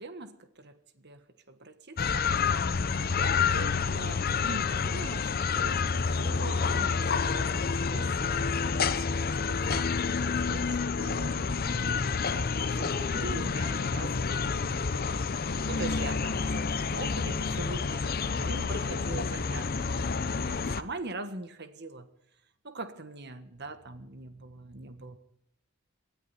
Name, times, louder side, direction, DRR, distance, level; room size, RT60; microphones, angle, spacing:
voice 1, 0.0-9.9 10.2-15.2 15.5-22.1 22.6-25.2, right 2 dB, 50° right, 10 dB, 1.4 m, -43 dB
sound 1, 2.0-20.8, left 5 dB, 45° left, 0.6 m, -29 dB
19.0 x 13.0 x 4.3 m, 0.83 s
head